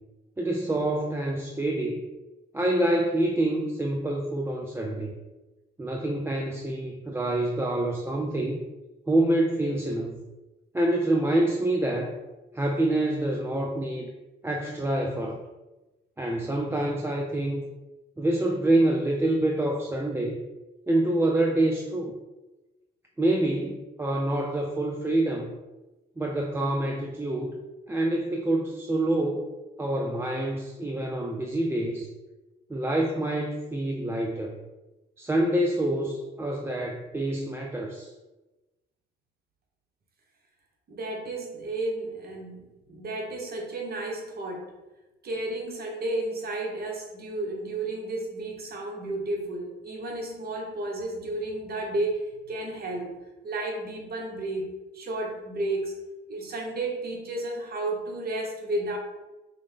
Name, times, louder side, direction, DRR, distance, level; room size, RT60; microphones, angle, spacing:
voice 1, 0.4-2.0 2.5-5.1 5.8-8.6 9.1-10.2 10.7-12.1 12.5-14.1 14.4-15.4 16.2-17.7 18.2-20.4 20.9-22.1 23.2-25.5 26.2-27.5 27.9-29.5 29.8-32.1 32.7-34.6 35.2-38.1, right 1 dB, 10° right, 1 dB, 0.4 m, -26 dB
voice 2, 40.9-44.7 45.2-53.1 53.4-55.9 56.3-59.0, right 2 dB, 50° right, 0 dB, 1.0 m, -32 dB
5.4 x 2.1 x 3.3 m, 1.1 s
cardioid pair, 90°, 20 cm